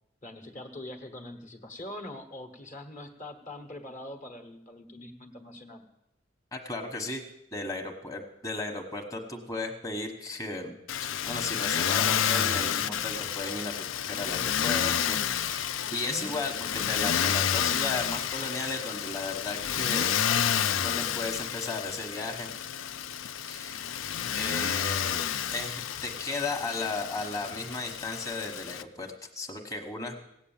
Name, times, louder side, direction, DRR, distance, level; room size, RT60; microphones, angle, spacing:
voice 1, 0.2-5.8 15.9-16.3, left 1 dB, 40° left, 5 dB, 1.3 m, -43 dB
voice 2, 6.5-7.2 7.5-20.2 20.7-22.5 23.5-23.9 24.3-25.2 25.5-30.2, left 3 dB, 20° left, 2 dB, 1.2 m, -35 dB
Motor vehicle (road), 10.9-28.8, left 9 dB, 85° left, 0.5 m, -30 dB
17.0 x 8.3 x 7.2 m, 0.84 s
head